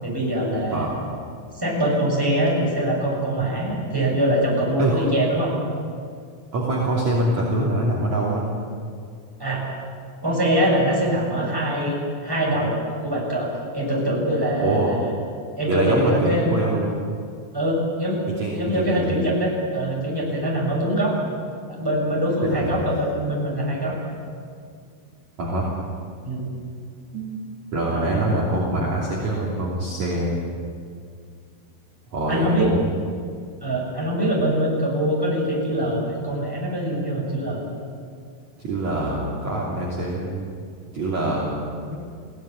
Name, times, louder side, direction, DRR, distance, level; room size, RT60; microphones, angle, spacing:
voice 1, 0.0-0.9 1.6-5.6 9.4-9.6 10.2-12.8 13.0-15.1 15.6-16.5 17.5-18.2 18.5-21.1 21.7-23.9 26.2-26.5 27.9-28.2 32.3-32.7 33.6-37.6, right 1 dB, 5° right, -3 dB, 6.4 m, -23 dB
voice 2, 6.5-8.5 14.1-14.2 14.6-14.9 15.7-16.9 18.4-18.6 18.9-19.1 22.4-22.8 25.4-25.7 27.1-27.3 27.7-30.4 32.1-32.9 38.6-40.5 40.9-42.0, right 2 dB, 45° right, -5 dB, 3.9 m, -24 dB
22.0 x 17.0 x 9.8 m, 2.2 s
omnidirectional pair, 5.3 m